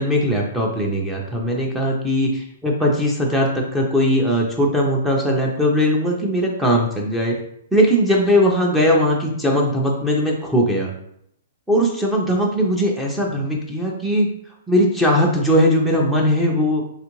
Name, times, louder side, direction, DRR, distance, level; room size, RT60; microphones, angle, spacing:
voice 1, 0.0-7.4 7.7-10.9 11.7-14.3 14.7-16.8, equal, 5° right, -2 dB, 0.5 m, -19 dB
3.5 x 2.4 x 3.0 m, 0.73 s
hypercardioid pair, 150°, 0 cm